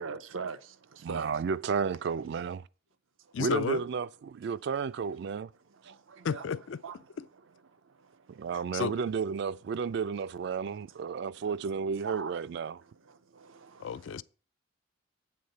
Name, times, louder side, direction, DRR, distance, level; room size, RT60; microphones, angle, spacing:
voice 1, 0.0-1.3 5.7-6.4 6.8-7.0 7.8-8.5 11.3-11.6 12.0-12.3 13.1-14.2, right 5 dB, 85° right, 0.6 m, -42 dB
voice 2, 1.0-2.6 3.4-5.5 8.3-12.8, right 6 dB, 60° right, 0.3 m, -32 dB
voice 3, 3.3-3.8 6.2-6.8 7.2-7.3 8.7-9.0 13.8-14.2, left 6 dB, 70° left, 0.3 m, -32 dB
8.5 x 4.0 x 6.5 m
head